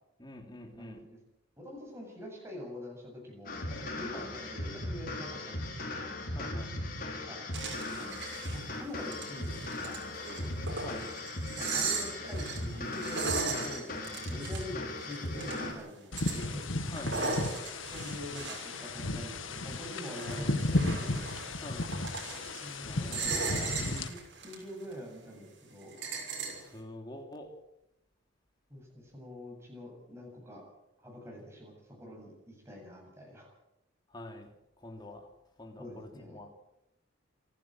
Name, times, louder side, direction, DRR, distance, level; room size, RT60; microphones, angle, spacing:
voice 1, 0.2-1.0 4.1-4.4 6.3-6.8 10.8-11.1 16.9-17.4 20.2-20.7 21.6-21.9 22.8-23.8 26.5-27.5 34.1-34.5 34.8-35.3 35.6-36.5, left 1 dB, 20° left, 3 dB, 3.1 m, -46 dB
voice 2, 0.8-1.2 1.6-6.1 7.3-7.4 8.0-10.5 11.6-16.6 17.9-21.3 22.6-23.4 23.7-24.2 24.4-26.0 28.7-30.6 31.0-33.5 35.8-36.4, left 1 dB, 15° right, -1 dB, 7.8 m, -45 dB
sound 1, 3.5-15.7, left 2 dB, 45° left, 4.8 m, -38 dB
sound 2, 7.5-8.6 9.0-15.8 16.2-19.4 19.6-22.7 23.1-24.6 24.9-25.0 25.8-26.6, right 4 dB, 60° right, 6.2 m, -37 dB
sound 3, 16.1-24.1, left 2 dB, 75° left, 1.8 m, -34 dB
27.5 x 12.0 x 7.9 m, 0.86 s
head